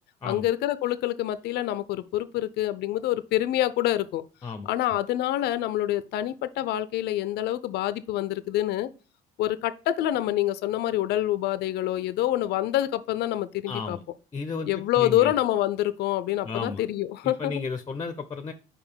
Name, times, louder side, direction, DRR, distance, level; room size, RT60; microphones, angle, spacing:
voice 1, 0.2-4.2 4.7-8.9 9.4-14.0 14.7-17.6, left 13 dB, 75° left, 0.5 m, -26 dB
voice 2, 13.7-14.0 14.3-15.3 16.4-16.8 17.2-18.5, left 4 dB, 25° left, 0.6 m, -33 dB
5.0 x 4.9 x 5.5 m
cardioid pair, 110°, 17 cm